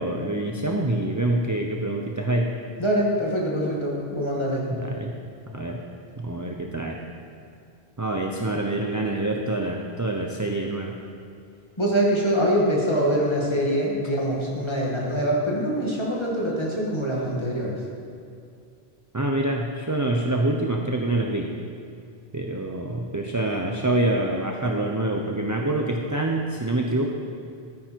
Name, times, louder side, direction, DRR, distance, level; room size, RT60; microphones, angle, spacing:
voice 1, 0.0-2.5 4.7-5.2 5.5-5.8 6.2-7.0 8.0-10.9 19.1-21.5 22.3-27.1, right 2 dB, 20° right, 1 dB, 0.6 m, -26 dB
voice 2, 2.8-4.6 11.8-17.8, equal, 25° left, -4 dB, 2.2 m, -24 dB
13.0 x 9.5 x 4.6 m, 2.4 s
omnidirectional pair, 1.1 m